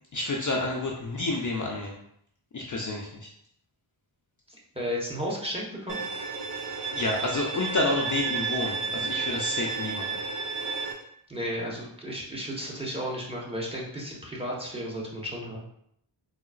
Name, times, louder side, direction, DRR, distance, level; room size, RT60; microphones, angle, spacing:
voice 1, 0.1-2.0 2.5-3.3 6.9-10.2, left 2 dB, 40° left, -1 dB, 0.5 m, -29 dB
voice 2, 4.5-6.0 11.3-15.6, equal, 10° right, -4 dB, 0.9 m, -33 dB
Bowed string instrument, 5.9-10.9, right 5 dB, 60° right, 0.6 m, -32 dB
3.8 x 2.0 x 2.4 m, 0.71 s
cardioid pair, 50°, 49 cm